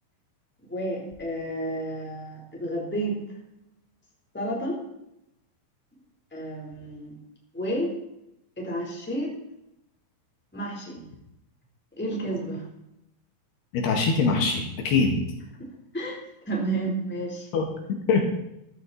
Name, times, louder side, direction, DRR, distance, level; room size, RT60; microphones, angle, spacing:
voice 1, 0.6-3.2 4.3-4.8 6.3-7.1 7.5-7.9 8.6-9.4 10.5-11.0 12.0-12.6 15.6-16.2 16.4-17.5, right 1 dB, 5° left, -2 dB, 3.3 m, -31 dB
voice 2, 13.7-15.2 17.5-18.2, left 4 dB, 70° left, 2 dB, 3.9 m, -23 dB
14.5 x 14.5 x 4.3 m, 0.84 s
omnidirectional pair, 4.9 m